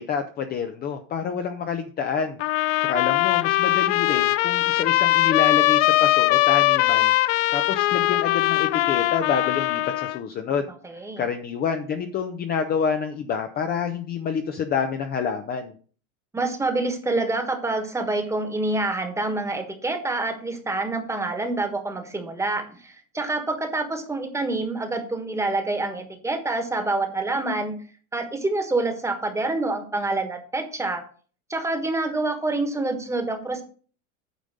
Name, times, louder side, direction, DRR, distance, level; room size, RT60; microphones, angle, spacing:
voice 1, 0.0-10.7 11.2-15.7, left 6 dB, 25° left, 6 dB, 0.7 m, -28 dB
sound 1, 2.4-10.2, left 18 dB, 65° left, 0.6 m, -21 dB
voice 2, 10.8-11.2 16.3-27.7 28.1-31.0 31.5-33.6, right 2 dB, 5° right, 6 dB, 1.4 m, -27 dB
9.1 x 5.1 x 6.5 m, 0.41 s
supercardioid pair, 150°, 40 cm